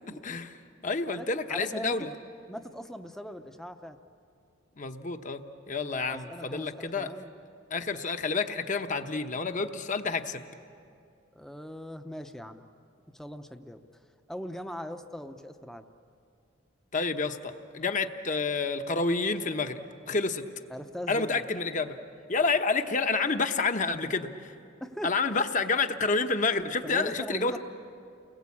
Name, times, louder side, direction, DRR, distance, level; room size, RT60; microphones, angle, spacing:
voice 1, 0.1-0.6 0.8-2.1 4.8-5.4 5.7-7.1 7.7-10.5 16.9-19.8 20.1-20.4 21.1-22.0 22.3-24.5 25.0-27.6, left 4 dB, 40° left, 8 dB, 1.0 m, -29 dB
voice 2, 1.1-2.0 2.5-4.0 5.9-7.3 11.3-12.6 13.1-13.8 14.3-15.9 20.7-21.4 24.8-25.1 26.8-27.6, equal, ahead, 7 dB, 0.7 m, -40 dB
30.0 x 21.0 x 8.5 m, 2.5 s
head